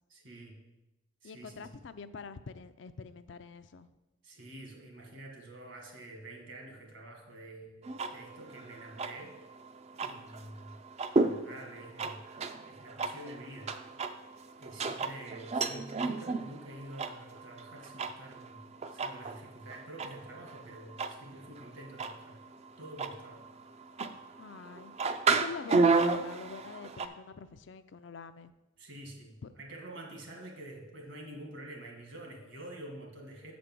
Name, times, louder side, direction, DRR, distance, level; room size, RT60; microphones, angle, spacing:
voice 1, 0.1-0.6 1.2-1.7 4.2-9.3 10.0-10.8 11.1-12.2 12.6-13.8 14.6-22.4 22.8-23.5 28.8-33.5, right 1 dB, 70° right, 1 dB, 1.8 m, -47 dB
voice 2, 1.2-3.9 24.4-24.9 25.3-28.5 29.4-29.5, left 5 dB, 65° left, 11 dB, 0.4 m, -45 dB
sound 1, 7.8-27.1, right 4 dB, 35° right, 0.4 m, -33 dB
7.4 x 5.2 x 6.0 m, 0.98 s
head